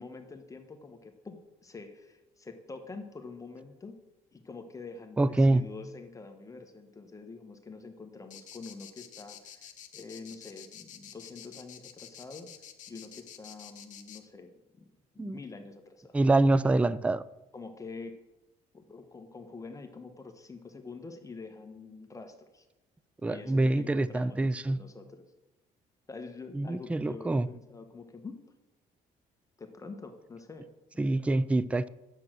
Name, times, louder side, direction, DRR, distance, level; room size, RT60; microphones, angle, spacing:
voice 1, 0.0-4.0 4.3-12.5 12.9-14.9 15.1-16.2 16.8-16.9 17.5-18.2 18.7-22.6 23.2-25.3 26.1-28.4 29.6-31.3, left 4 dB, 20° left, 1.2 m, -46 dB
voice 2, 5.2-5.6 15.2-15.4 16.1-17.2 23.2-24.8 26.5-27.5 31.0-31.9, right 2 dB, 10° right, 0.3 m, -25 dB
sound 1, 8.3-14.2, left 10 dB, 55° left, 1.2 m, -49 dB
9.7 x 7.8 x 6.2 m
cardioid pair, 110°, 15 cm